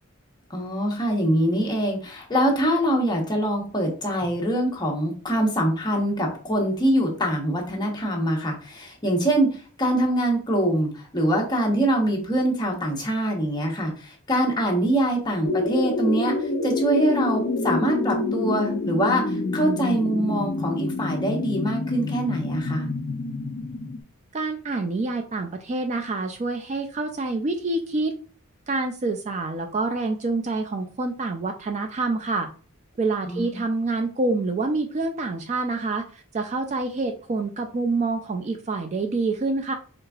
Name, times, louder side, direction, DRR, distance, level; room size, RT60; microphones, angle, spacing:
voice 1, 0.5-22.9 33.3-33.6, right 1 dB, 20° left, -1 dB, 0.9 m, -24 dB
sound 1, 15.4-24.0, left 2 dB, 45° left, 0.5 m, -27 dB
voice 2, 24.3-28.1 28.7-32.5 33.0-39.7, right 3 dB, 30° right, 5 dB, 0.3 m, -27 dB
4.8 x 3.4 x 2.3 m, 0.40 s
head